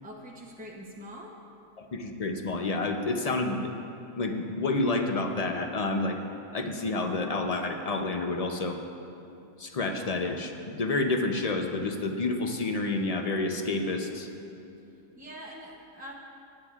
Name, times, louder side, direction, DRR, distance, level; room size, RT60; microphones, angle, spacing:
voice 1, 0.0-1.4 15.2-16.1, equal, 10° right, -3 dB, 0.4 m, -44 dB
voice 2, 1.8-3.7 4.2-6.2 6.5-8.8 9.6-14.3, left 2 dB, 50° left, 4 dB, 0.4 m, -29 dB
19.0 x 9.7 x 2.4 m, 2.7 s
omnidirectional pair, 1.4 m